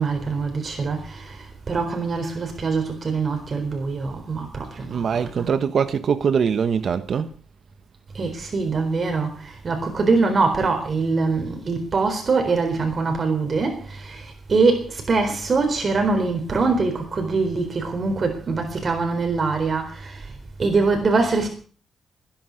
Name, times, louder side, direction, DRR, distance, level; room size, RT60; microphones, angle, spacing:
voice 1, 0.0-5.5 8.1-20.2 20.6-21.5, right 4 dB, 40° right, 4.0 m, -23 dB
voice 2, 4.9-7.3, right 6 dB, 60° right, 1.1 m, -22 dB
19.5 x 10.5 x 6.5 m
cardioid pair, 105°, 0 cm